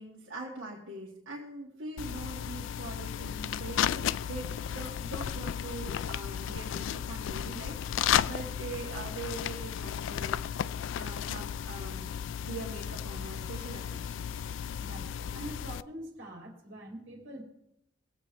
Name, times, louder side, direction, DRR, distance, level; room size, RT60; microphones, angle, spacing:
voice 1, 0.0-10.7 11.0-14.3, right 2 dB, 85° right, -5 dB, 2.0 m, -43 dB
sound 1, 2.0-15.8, left 9 dB, 70° left, 0.3 m, -34 dB
voice 2, 14.8-17.4, right 1 dB, 70° right, 0 dB, 2.9 m, -44 dB
21.0 x 7.9 x 3.3 m, 0.79 s
head